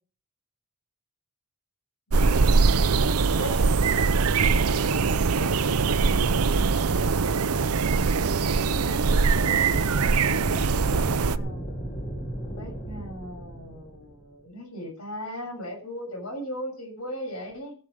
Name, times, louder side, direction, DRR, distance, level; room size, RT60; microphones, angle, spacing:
voice 1, 2.1-2.8 3.3-3.9 4.5-4.6 5.1-6.7 8.5-11.7 12.5-17.8, equal, 90° left, 2 dB, 6.5 m, -39 dB
sound 1, 2.1-11.4, right 4 dB, 85° right, 0.7 m, -22 dB
sound 2, 9.6-14.4, right 1 dB, 40° left, 3.5 m, -35 dB
15.0 x 7.9 x 6.5 m, 0.42 s
head